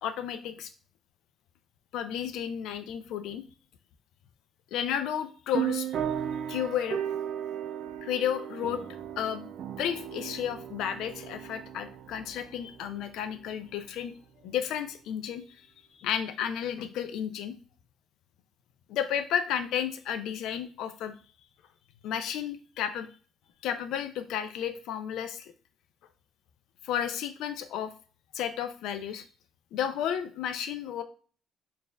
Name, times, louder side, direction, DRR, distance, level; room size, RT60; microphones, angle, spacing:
voice 1, 0.0-0.7 1.9-3.4 4.7-5.9 6.5-7.0 8.0-8.8 9.2-9.5 9.8-14.1 14.4-15.7 16.0-17.5 18.9-21.1 22.0-23.1 23.6-25.5 26.8-27.9 28.3-29.2 29.7-31.0, left 9 dB, 80° left, 9 dB, 0.5 m, -32 dB
sound 1, 5.5-13.6, right 9 dB, 60° right, 0.5 m, -36 dB
4.1 x 2.5 x 3.4 m, 0.39 s
cardioid pair, 125°, 0 cm